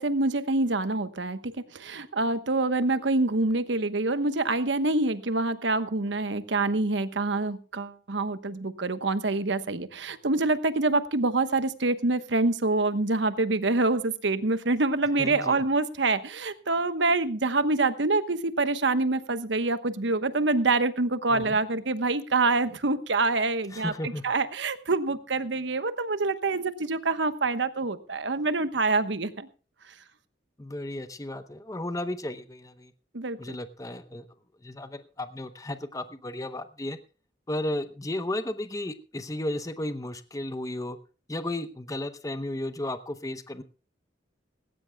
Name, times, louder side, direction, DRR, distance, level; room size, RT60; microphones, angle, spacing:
voice 1, 0.0-29.5 33.1-33.4, right 3 dB, 75° right, 12 dB, 1.1 m, -26 dB
voice 2, 15.2-15.6 21.3-21.6 23.7-24.2 30.6-32.9 33.4-34.3 34.6-37.0 37.5-41.0 41.3-43.6, left 1 dB, 20° left, 10 dB, 0.8 m, -34 dB
19.0 x 17.0 x 2.3 m, 0.36 s
head